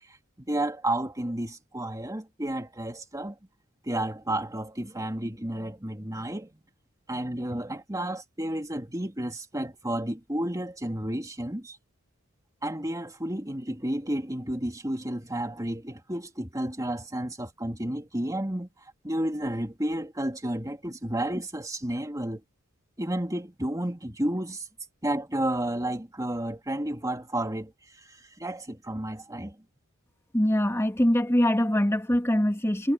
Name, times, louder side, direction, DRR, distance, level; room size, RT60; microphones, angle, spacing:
voice 1, 0.4-3.4 3.8-6.6 7.1-11.8 12.6-18.7 19.0-22.4 23.0-24.7 25.0-27.7 28.0-29.6, right 1 dB, 15° right, 2.7 m, -31 dB
voice 2, 30.3-32.9, equal, 15° left, 2.2 m, -23 dB
head